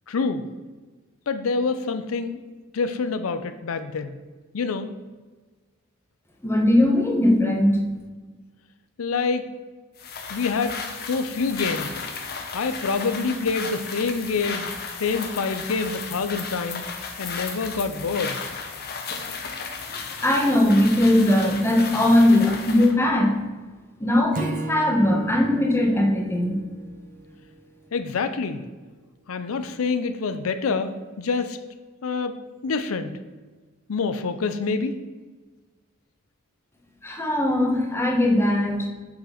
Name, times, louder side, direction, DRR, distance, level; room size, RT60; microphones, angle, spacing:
voice 1, 0.1-0.5 1.3-2.4 2.7-4.2 4.5-5.0 9.0-9.5 10.3-11.9 12.5-16.8 17.2-18.4 27.9-28.6 29.3-31.6 32.0-33.2 33.9-34.9, left 4 dB, 85° left, 10 dB, 0.5 m, -26 dB
voice 2, 6.4-7.8 20.2-23.4 24.0-26.6 37.0-38.9, left 1 dB, 10° left, 2 dB, 1.1 m, -20 dB
sound 1, 10.0-23.0, left 5 dB, 50° left, 1.0 m, -34 dB
Acoustic guitar / Strum, 24.3-27.7, right 1 dB, 40° right, 0.6 m, -34 dB
6.3 x 5.8 x 5.8 m, 1.3 s
head